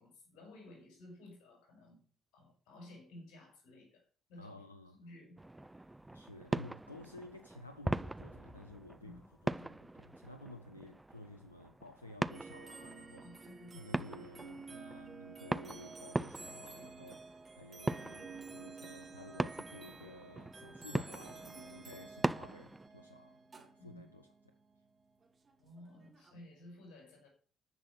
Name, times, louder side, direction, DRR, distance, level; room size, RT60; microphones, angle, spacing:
voice 1, 0.0-2.0 2.3-4.6 4.9-5.4 5.7-5.8 9.0-9.7 13.2-13.9 23.8-24.1 25.6-27.3, left 1 dB, 60° left, 5.5 m, -55 dB
voice 2, 4.4-5.0 6.1-13.4 13.7-24.6, left 2 dB, 85° left, 0.5 m, -53 dB
sound 1, 5.4-22.9, right 1 dB, 10° right, 0.5 m, -41 dB
sound 2, 12.3-26.3, right 4 dB, 35° right, 3.1 m, -52 dB
13.5 x 6.2 x 6.1 m
figure-of-eight pair, 45°, 0 cm